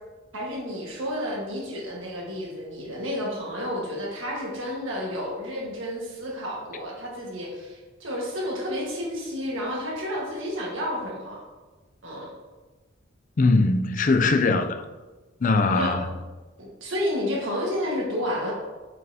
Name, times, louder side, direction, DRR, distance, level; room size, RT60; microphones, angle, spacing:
voice 1, 0.3-11.4 12.0-12.3 15.6-15.9 16.6-18.5, equal, 80° right, 1.6 m, -31 dB
voice 2, 13.4-14.8 15.4-16.1, left 3 dB, 40° left, 0.4 m, -21 dB
7.4 x 5.4 x 2.8 m
head